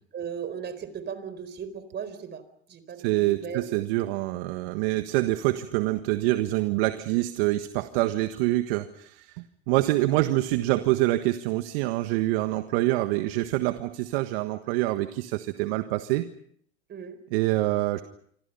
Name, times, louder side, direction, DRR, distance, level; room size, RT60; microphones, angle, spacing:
voice 1, 0.1-2.4 2.7-3.9 16.9-17.2, right 7 dB, 35° right, 13 dB, 4.3 m, -37 dB
voice 2, 3.0-16.3 17.3-18.0, right 17 dB, 65° right, 9 dB, 1.5 m, -26 dB
27.0 x 26.0 x 5.6 m, 0.65 s
hypercardioid pair, 95°, 31 cm